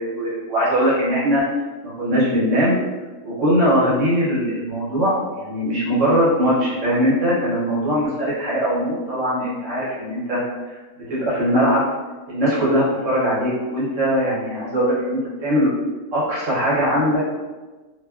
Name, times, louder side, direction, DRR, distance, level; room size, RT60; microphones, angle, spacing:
voice 1, 0.0-1.4 2.0-2.8 3.2-10.4 10.7-10.8 11.1-11.8 12.3-15.7 16.1-17.2, equal, 60° right, -8 dB, 1.1 m, -20 dB
2.6 x 2.2 x 2.2 m, 1.2 s
omnidirectional pair, 1.5 m